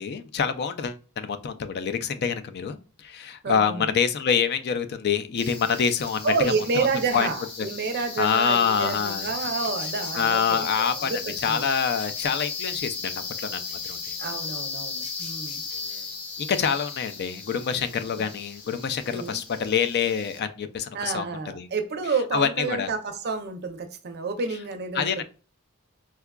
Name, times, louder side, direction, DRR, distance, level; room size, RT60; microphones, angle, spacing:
voice 1, 0.0-6.3 6.8-6.9 7.1-7.3 8.2-9.3 10.1-11.1 11.4-14.2 15.7-16.0 16.4-21.2 21.6-21.7 22.3-22.9 25.0-25.2, left 7 dB, 45° left, 0.4 m, -26 dB
voice 2, 3.4-3.9 6.2-10.7 10.9-11.7 14.2-15.6 18.1-18.3 19.1-19.4 20.9-25.2, right 4 dB, 45° right, 0.5 m, -29 dB
sound 1, 5.4-20.4, left 4 dB, 90° left, 1.5 m, -36 dB
4.5 x 2.3 x 2.2 m
head